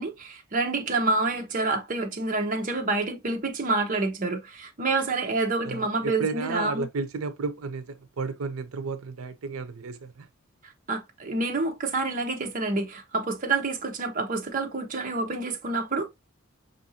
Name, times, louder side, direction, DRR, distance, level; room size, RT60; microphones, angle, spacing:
voice 1, 0.0-6.9 10.9-16.1, right 3 dB, 40° right, 0.8 m, -28 dB
voice 2, 5.6-10.3, right 4 dB, 85° right, 0.5 m, -33 dB
5.5 x 2.6 x 2.7 m
head